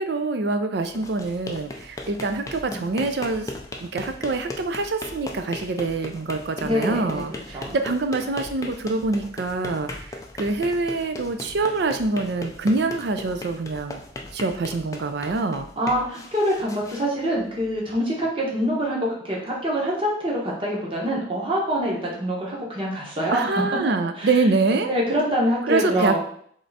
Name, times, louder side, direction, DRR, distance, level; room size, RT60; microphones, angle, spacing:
voice 1, 0.0-3.5 3.8-14.0 14.3-15.7 23.3-24.9 25.6-26.2, right 3 dB, 55° right, 7 dB, 0.4 m, -25 dB
sound 1, 0.8-17.8, left 2 dB, 15° left, 0.3 m, -38 dB
voice 2, 6.6-7.2 7.5-7.7 15.8-19.0 19.2-23.6 24.2-24.3 24.9-26.2, equal, 25° right, -4 dB, 1.1 m, -25 dB
3.7 x 3.3 x 4.0 m, 0.63 s
head